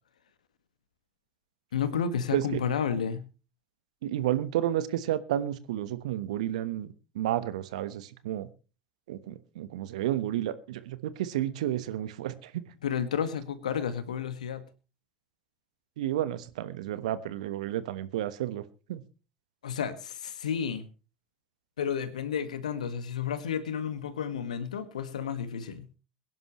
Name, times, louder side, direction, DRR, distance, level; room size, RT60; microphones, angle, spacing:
voice 1, 1.7-3.2 12.8-14.6 19.6-20.9 21.8-25.9, left 7 dB, 80° left, 11 dB, 1.7 m, -31 dB
voice 2, 4.0-6.9 7.1-8.5 9.1-12.5 16.0-18.6 18.9-19.0, right 12 dB, 70° right, 14 dB, 1.2 m, -31 dB
22.5 x 11.0 x 3.1 m, 0.33 s
figure-of-eight pair, 70°, 4 cm